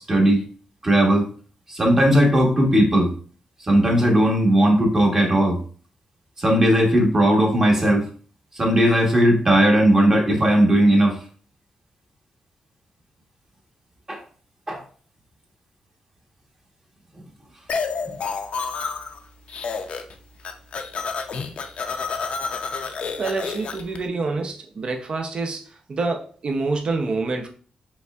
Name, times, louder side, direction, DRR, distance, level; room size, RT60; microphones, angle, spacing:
voice 1, 0.1-0.4 0.8-1.3 1.7-3.1 3.7-5.6 6.4-8.1 8.6-11.2 14.1-14.2 14.7-14.8, right 1 dB, 25° right, 0 dB, 1.1 m, -17 dB
sound 1, 17.7-19.2 19.5-20.1 20.4-24.0, left 5 dB, 60° left, 0.5 m, -29 dB
voice 2, 23.2-27.5, right 3 dB, 45° right, 3 dB, 0.6 m, -27 dB
5.2 x 3.4 x 2.3 m, 0.42 s
wide cardioid pair, 125°, 2 cm